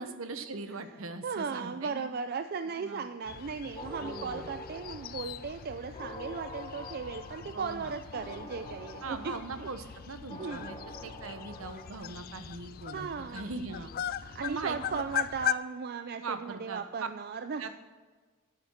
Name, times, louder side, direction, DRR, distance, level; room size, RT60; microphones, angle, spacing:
voice 1, 0.0-2.1 2.8-3.1 4.0-4.5 7.5-7.9 9.0-13.9 14.4-15.0 16.2-17.1 17.6-17.7, right 3 dB, 70° right, 9 dB, 1.1 m, -40 dB
voice 2, 1.2-9.7 10.3-10.8 12.9-13.5 14.2-17.7, right 5 dB, 45° right, 9 dB, 0.4 m, -37 dB
sound 1, 3.3-15.5, left 10 dB, 40° left, 0.3 m, -40 dB
sound 2, 3.8-12.5, left 1 dB, 25° left, 2.9 m, -46 dB
11.0 x 8.5 x 7.2 m, 1.4 s
head